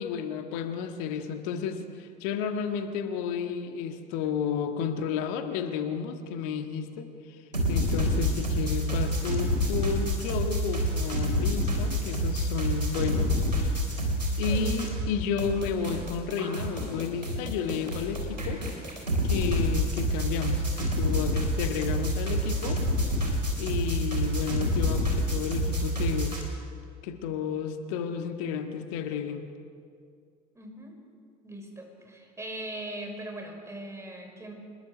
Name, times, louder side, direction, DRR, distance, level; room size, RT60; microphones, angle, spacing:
voice 1, 0.0-7.4 7.7-13.8 14.4-18.6 19.2-22.8 23.6-26.4 27.0-29.4, left 7 dB, 60° left, 6 dB, 1.7 m, -32 dB
sound 1, 7.5-15.1 15.4-26.4, equal, 90° right, 3.4 m, -28 dB
voice 2, 7.9-8.2 14.5-14.8 30.5-31.0 31.4-34.5, right 1 dB, 15° right, 2 dB, 5.9 m, -40 dB
26.0 x 21.0 x 6.3 m, 2.3 s
figure-of-eight pair, 65°, 21 cm